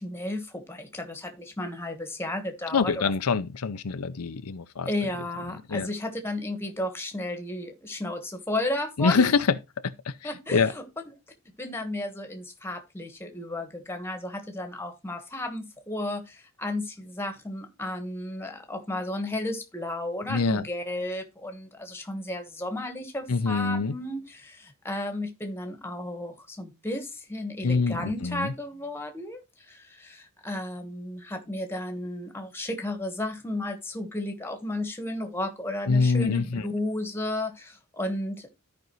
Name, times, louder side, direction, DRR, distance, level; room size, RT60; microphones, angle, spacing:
voice 1, 0.0-3.1 4.8-9.2 10.2-10.8 11.6-38.5, left 1 dB, 10° left, 1.3 m, -33 dB
voice 2, 2.7-4.9 5.7-5.9 9.0-9.5 9.8-10.7 20.3-20.6 23.3-24.0 27.6-28.5 35.9-36.7, left 4 dB, 85° left, 0.6 m, -25 dB
13.5 x 5.3 x 3.1 m
head